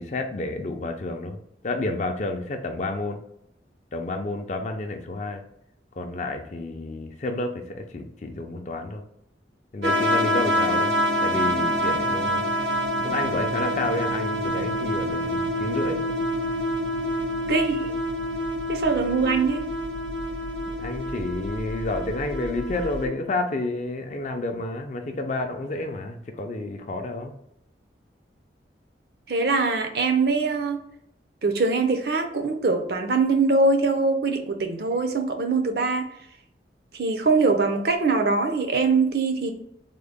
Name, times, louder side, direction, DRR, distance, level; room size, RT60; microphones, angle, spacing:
voice 1, 0.0-3.2 3.9-5.4 5.9-9.0 9.7-10.9 11.2-12.5 13.0-16.0 20.7-27.3, left 2 dB, 40° left, 5 dB, 0.4 m, -30 dB
sound 1, 9.8-23.1, equal, 85° right, 0.8 m, -26 dB
voice 2, 17.5-17.9 18.7-19.7 29.3-30.8 31.4-36.1 37.0-39.5, right 3 dB, 60° right, 5 dB, 0.5 m, -22 dB
3.6 x 2.0 x 3.5 m, 0.76 s
head